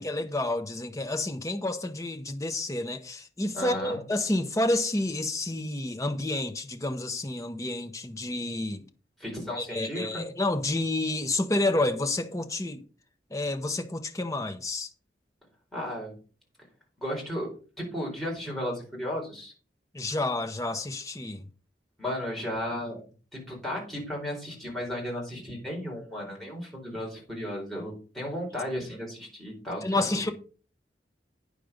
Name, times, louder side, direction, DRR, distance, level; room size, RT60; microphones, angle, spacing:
voice 1, 0.0-8.8 9.6-12.8 13.3-14.9 19.9-21.4 29.8-30.3, left 2 dB, 20° left, 0.9 m, -29 dB
voice 2, 3.5-4.0 9.2-10.2 15.7-16.1 17.0-17.5 17.8-19.5 22.0-23.0 23.3-30.3, equal, ahead, 4.2 m, -34 dB
9.3 x 6.5 x 5.1 m
head